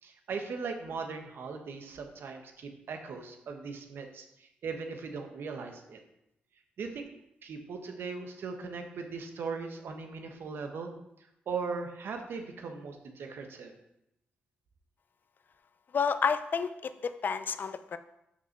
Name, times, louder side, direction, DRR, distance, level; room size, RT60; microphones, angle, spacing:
voice 1, 0.0-6.0 6.8-7.1 7.4-10.9 11.5-13.7, right 4 dB, 75° right, 4 dB, 1.3 m, -39 dB
voice 2, 15.9-18.0, left 6 dB, 55° left, 10 dB, 0.6 m, -30 dB
7.0 x 6.0 x 5.9 m, 0.84 s
cardioid pair, 60°, 4 cm